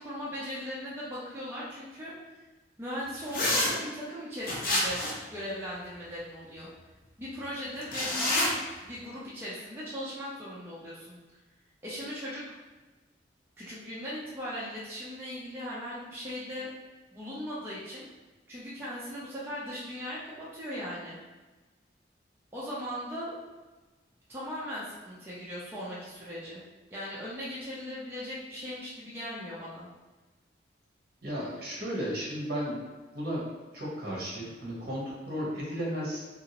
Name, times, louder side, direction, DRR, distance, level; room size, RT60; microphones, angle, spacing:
voice 1, 0.0-2.1 2.8-5.0 5.3-6.7 7.2-8.5 8.8-11.2 11.8-12.4 13.6-16.7 17.1-18.1 18.5-21.2 22.5-23.3 24.3-26.6 26.9-29.9, equal, 10° right, -8 dB, 0.5 m, -38 dB
sound 1, 3.3-3.7 4.4-5.2 7.8-8.5, left 1 dB, 50° left, 0.6 m, -27 dB
voice 2, 31.2-32.8 33.1-33.4 33.7-36.2, equal, 55° right, -5 dB, 1.0 m, -34 dB
2.9 x 2.6 x 2.8 m, 1.2 s
head